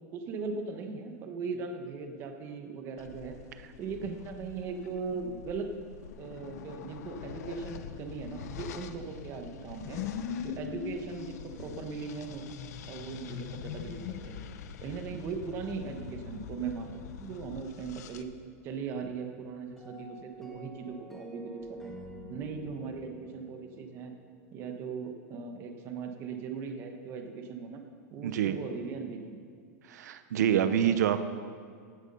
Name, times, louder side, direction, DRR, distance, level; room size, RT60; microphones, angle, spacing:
voice 1, 0.1-3.4 3.8-5.7 6.2-10.0 10.4-12.4 12.9-14.4 14.8-18.3 18.6-22.0 22.3-24.1 24.5-27.8 28.1-29.4, right 5 dB, 30° right, 5 dB, 1.1 m, -39 dB
sound 1, 3.0-18.2, left 8 dB, 75° left, 0.8 m, -46 dB
sound 2, 9.8-15.0 17.7-18.5 18.7-19.2 21.6-23.0, left 8 dB, 40° left, 0.6 m, -42 dB
sound 3, 19.8-24.9, right 1 dB, 5° left, 1.6 m, -48 dB
voice 2, 28.2-28.6 29.9-31.2, right 9 dB, 80° right, 11 dB, 0.7 m, -26 dB
16.0 x 8.2 x 5.5 m, 2.1 s
supercardioid pair, 170°, 9 cm